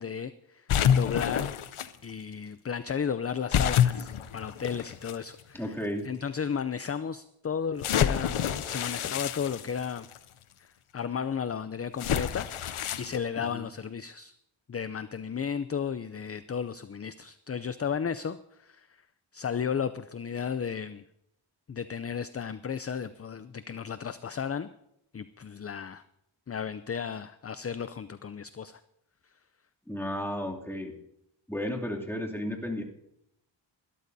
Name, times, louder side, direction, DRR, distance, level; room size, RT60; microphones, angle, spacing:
voice 1, 0.0-1.5 2.0-5.8 6.0-10.1 10.6-14.4 14.7-18.9 19.3-21.0 21.7-24.7 25.1-26.0 26.5-28.8, left 7 dB, 30° left, 13 dB, 0.4 m, -34 dB
sound 1, 0.7-1.9 3.5-5.1 5.9-6.0 7.8-10.2 12.0-13.2, left 9 dB, 85° left, 0.7 m, -27 dB
voice 2, 5.5-6.1 13.4-13.6 29.9-30.9 31.5-32.8, left 1 dB, 5° left, -2 dB, 2.6 m, -33 dB
23.0 x 12.5 x 2.7 m, 0.79 s
wide cardioid pair, 60°, 48 cm